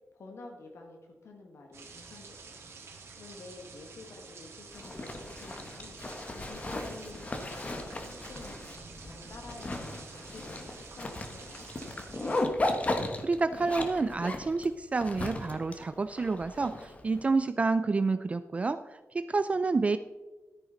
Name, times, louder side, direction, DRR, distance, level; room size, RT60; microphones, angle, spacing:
voice 1, 0.1-2.6 3.2-11.7, left 3 dB, 70° left, 2 dB, 1.6 m, -50 dB
sound 1, 1.7-12.4, right 4 dB, 70° right, 1.9 m, -49 dB
Zipper (clothing), 4.7-17.2, left 2 dB, 30° left, 1.2 m, -36 dB
voice 2, 13.2-20.0, right 3 dB, 30° right, 11 dB, 0.4 m, -29 dB
13.5 x 9.3 x 3.9 m, 1.2 s
wide cardioid pair, 165°, 5 cm